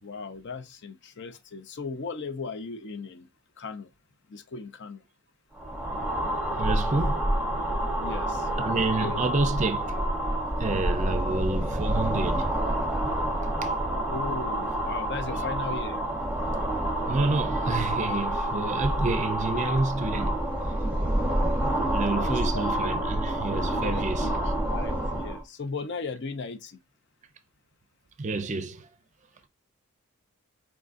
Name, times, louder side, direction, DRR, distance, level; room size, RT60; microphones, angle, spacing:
voice 1, 0.0-3.3 3.6-3.9 4.3-5.0 8.0-9.2 14.1-16.0 22.1-22.7 23.7-24.3 24.7-26.8, left 4 dB, 50° left, 0.5 m, -37 dB
sound 1, 5.6-25.4, right 1 dB, 5° right, 0.8 m, -28 dB
voice 2, 6.6-7.3 8.6-10.0 10.6-12.5 13.6-13.7 17.1-20.3 21.9-24.3 28.2-28.9, right 3 dB, 30° right, 0.5 m, -29 dB
4.8 x 3.8 x 2.5 m
head